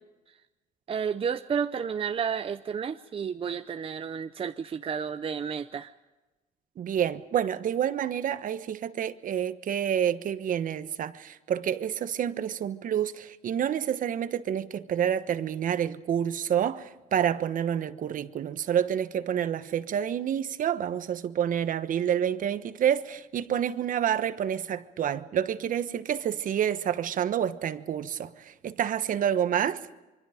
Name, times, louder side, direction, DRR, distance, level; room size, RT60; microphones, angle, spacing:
voice 1, 0.9-5.9, right 7 dB, 35° right, 0.7 m, -31 dB
voice 2, 6.8-29.9, right 9 dB, 50° right, 1.2 m, -28 dB
26.0 x 24.0 x 5.1 m
cardioid pair, 110°, 17 cm